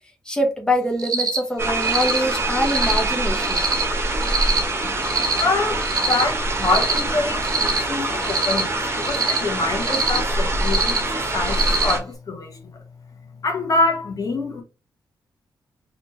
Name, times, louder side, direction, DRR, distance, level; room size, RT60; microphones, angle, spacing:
voice 1, 0.3-3.7, equal, 10° left, 1.1 m, -24 dB
Cricket, 1.0-1.4 1.8-2.2 2.6-3.0 3.4-3.8 4.2-4.6 5.0-5.4 5.8-6.2 6.6-7.0 7.4-7.8 8.2-8.6 9.0-9.4 9.8-10.2 10.6-11.0 11.5-11.9, right 5 dB, 55° right, 1.1 m, -24 dB
sound 1, 1.6-12.0, right 2 dB, 35° right, 1.2 m, -24 dB
voice 2, 5.4-12.6 13.4-14.6, left 3 dB, 50° left, 1.0 m, -25 dB
4.2 x 3.0 x 3.0 m
cardioid pair, 90°, 8 cm